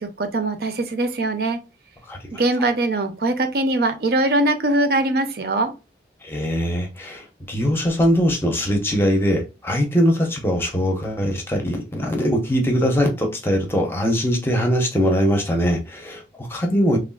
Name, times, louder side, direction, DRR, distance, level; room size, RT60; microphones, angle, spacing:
voice 1, 0.0-1.6 2.3-5.7, right 2 dB, 55° right, 0.5 m, -21 dB
voice 2, 6.2-17.0, equal, 15° left, 0.6 m, -21 dB
3.4 x 2.4 x 2.2 m
head